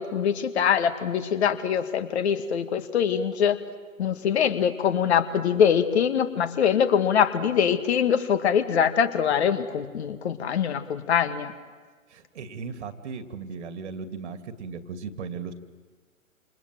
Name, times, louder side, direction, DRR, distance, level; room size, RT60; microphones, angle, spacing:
voice 1, 0.0-3.6 4.0-11.5, left 8 dB, 50° left, 9 dB, 1.9 m, -23 dB
voice 2, 12.1-15.5, right 5 dB, 55° right, 8 dB, 2.5 m, -37 dB
28.5 x 27.5 x 7.6 m, 1.5 s
figure-of-eight pair, 120°, 42 cm